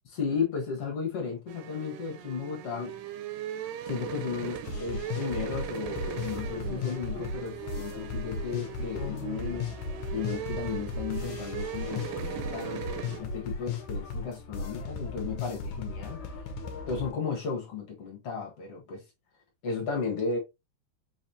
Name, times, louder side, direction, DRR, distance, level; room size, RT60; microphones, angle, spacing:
voice 1, 0.1-3.0 3.9-9.7 10.1-12.9 13.2-16.2 16.9-19.0 19.6-20.4, left 5 dB, 50° left, 2.0 m, -34 dB
sound 1, 1.5-13.2, right 10 dB, 85° right, 1.8 m, -39 dB
sound 2, 4.6-17.1, left 4 dB, 70° left, 1.9 m, -36 dB
5.5 x 3.1 x 2.7 m
omnidirectional pair, 4.0 m